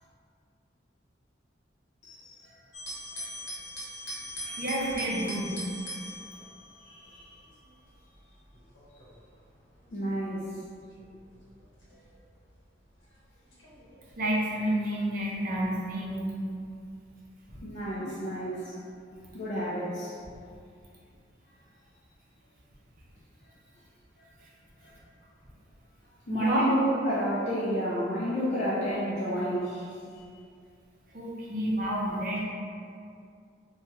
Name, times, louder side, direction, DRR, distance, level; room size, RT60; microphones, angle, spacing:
voice 1, 2.0-2.5 6.8-7.4 9.9-10.4 17.6-18.8 19.3-20.1 24.8-24.9 26.3-30.2, equal, 40° left, -10 dB, 0.4 m, -31 dB
sound 1, 2.7-12.9 13.5-14.0, equal, 80° left, 0.9 m, -42 dB
voice 2, 4.4-5.6 14.2-16.4 26.3-26.6 31.1-32.4, right 1 dB, 45° right, -5 dB, 0.6 m, -29 dB
3.0 x 2.3 x 2.7 m, 2.3 s
head